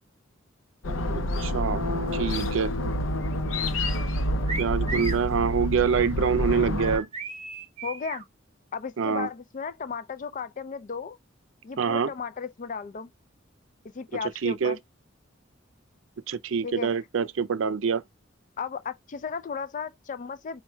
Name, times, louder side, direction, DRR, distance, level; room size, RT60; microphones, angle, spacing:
sound 1, 0.8-7.0, left 1 dB, 90° left, 0.6 m, -28 dB
voice 1, 1.1-1.8 2.1-2.7 4.6-7.1 9.0-9.3 11.8-12.1 14.4-14.8 16.3-18.0, right 6 dB, 90° right, 0.5 m, -25 dB
sound 2, 4.5-5.3 6.8-8.2, right 5 dB, 35° right, 0.7 m, -35 dB
voice 2, 7.8-8.2 8.7-11.2 11.6-13.1 13.9-14.8 16.6-16.9 18.6-20.6, left 6 dB, 40° left, 0.4 m, -35 dB
4.5 x 2.3 x 4.3 m
head